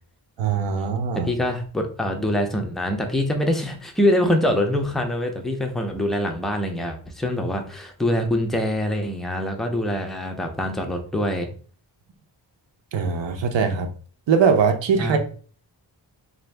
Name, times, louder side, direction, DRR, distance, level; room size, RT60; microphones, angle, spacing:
voice 1, 0.4-1.3 12.9-13.9 14.3-15.2, right 6 dB, 70° right, 5 dB, 0.7 m, -21 dB
voice 2, 1.2-11.5 15.0-15.2, left 1 dB, ahead, 3 dB, 0.4 m, -24 dB
3.8 x 2.6 x 3.3 m, 0.41 s
wide cardioid pair, 170°, 45 cm